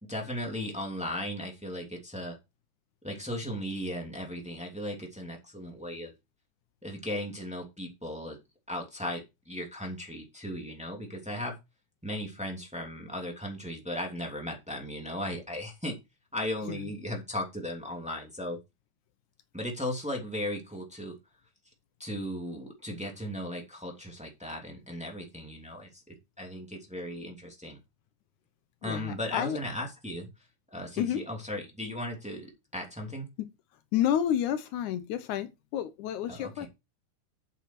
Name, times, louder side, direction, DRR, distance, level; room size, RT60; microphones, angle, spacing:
voice 1, 0.0-2.4 3.0-6.1 6.8-8.4 8.7-11.6 12.0-16.0 16.3-18.6 19.5-21.2 22.0-27.8 28.8-30.3 30.7-33.3 36.3-36.7, left 1 dB, ahead, 2.4 m, -36 dB
voice 2, 28.8-29.6 31.0-31.2 33.4-33.5 33.9-36.7, left 10 dB, 80° left, 2.3 m, -30 dB
8.1 x 7.9 x 4.5 m
omnidirectional pair, 3.5 m